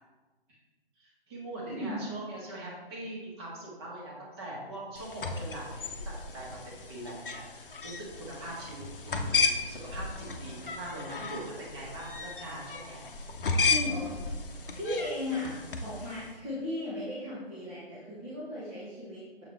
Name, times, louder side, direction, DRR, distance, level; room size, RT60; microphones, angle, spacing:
voice 1, 1.0-13.0, right 1 dB, 25° right, -4 dB, 1.7 m, -42 dB
sound 1, 5.0-16.3, left 4 dB, 60° left, 0.8 m, -34 dB
voice 2, 13.7-14.2 14.7-19.4, left 1 dB, 10° right, -9 dB, 0.6 m, -36 dB
7.0 x 4.8 x 3.2 m, 1.3 s
figure-of-eight pair, 140°, 31 cm